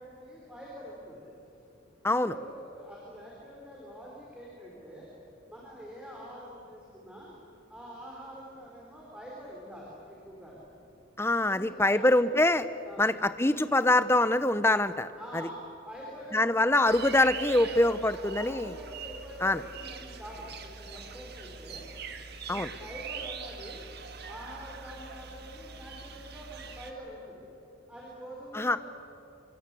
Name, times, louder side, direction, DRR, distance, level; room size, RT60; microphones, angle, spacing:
voice 1, 0.0-1.3 2.1-5.1 5.5-7.3 7.6-10.6 11.5-12.1 12.8-13.2 15.2-16.5 18.1-21.8 22.5-23.8 24.2-27.5 27.9-28.8, equal, 5° right, -4 dB, 4.7 m, -45 dB
voice 2, 2.0-2.3 11.2-12.7 13.0-15.1 15.3-15.4 16.3-18.7 19.4-19.6 22.5-22.7 28.5-28.8, left 2 dB, 10° left, 12 dB, 0.8 m, -24 dB
sound 1, 16.8-26.9, right 5 dB, 50° right, 1.8 m, -43 dB
27.5 x 25.5 x 8.5 m, 2.7 s
head